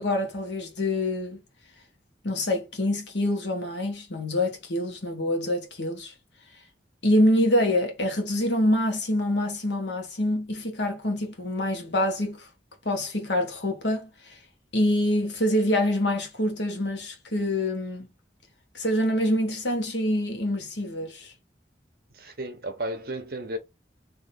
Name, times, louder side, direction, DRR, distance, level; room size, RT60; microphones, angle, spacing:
voice 1, 0.0-1.4 2.2-6.1 7.0-12.4 12.8-14.3 14.7-18.1 18.7-21.3, left 1 dB, 85° left, 1.5 m, -26 dB
voice 2, 22.1-23.6, right 1 dB, 55° right, 1.0 m, -33 dB
3.5 x 2.9 x 4.1 m
head